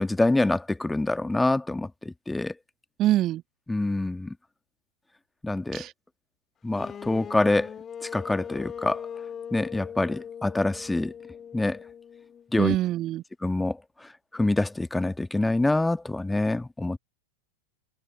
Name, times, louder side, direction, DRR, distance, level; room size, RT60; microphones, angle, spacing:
voice 1, 0.0-2.5 3.7-4.3 5.4-5.9 6.6-7.7 8.0-9.1 9.5-11.1 11.5-11.8 12.5-12.8 13.4-17.0, left 2 dB, 5° left, 1.6 m, -26 dB
voice 2, 3.0-3.4 5.7-5.9 12.6-13.2, right 14 dB, 35° right, 1.5 m, -24 dB
sound 1, 6.7-12.6, left 8 dB, 25° left, 1.9 m, -40 dB
figure-of-eight pair, 90°, 0 cm